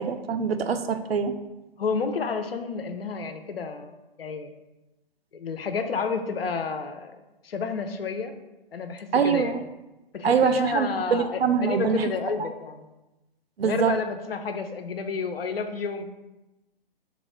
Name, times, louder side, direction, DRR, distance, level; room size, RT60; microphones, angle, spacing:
voice 1, 0.0-1.4 9.1-9.6 10.2-12.1 12.4-12.5 13.6-14.0, right 6 dB, 85° right, 9 dB, 0.5 m, -24 dB
voice 2, 1.8-4.5 5.3-7.2 7.4-8.3 8.7-9.6 10.1-12.9 13.6-16.0, left 5 dB, 80° left, 7 dB, 0.5 m, -30 dB
3.2 x 3.0 x 4.1 m, 1.0 s
figure-of-eight pair, 130°, 29 cm